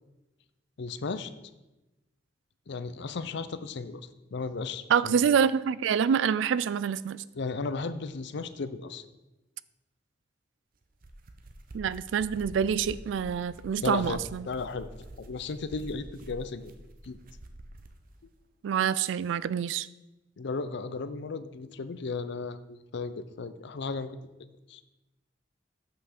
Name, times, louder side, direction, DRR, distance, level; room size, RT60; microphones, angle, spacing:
voice 1, 0.8-1.3 2.7-4.0 4.3-5.1 7.4-9.1 13.8-14.9 15.2-16.7 17.0-17.2 20.4-24.1 24.7-24.8, left 4 dB, 65° left, 12 dB, 0.5 m, -35 dB
voice 2, 4.9-7.2 11.7-14.5 18.6-19.9, right 7 dB, 70° right, 18 dB, 0.3 m, -26 dB
sound 1, 10.8-18.0, right 1 dB, 50° right, 0.7 m, -47 dB
5.8 x 5.7 x 6.6 m, 1.0 s
head